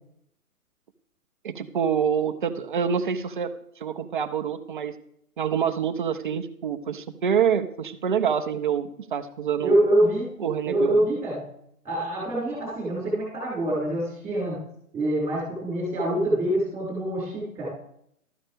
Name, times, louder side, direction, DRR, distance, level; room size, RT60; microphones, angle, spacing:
voice 1, 1.4-3.5 3.8-4.9 5.4-9.7 10.4-11.0, right 7 dB, 35° right, 9 dB, 0.8 m, -26 dB
voice 2, 9.6-10.3 10.6-11.4 11.8-14.6 14.9-17.7, right 1 dB, 5° right, -6 dB, 5.8 m, -25 dB
14.0 x 13.0 x 3.5 m, 0.70 s
figure-of-eight pair, 140°, 45 cm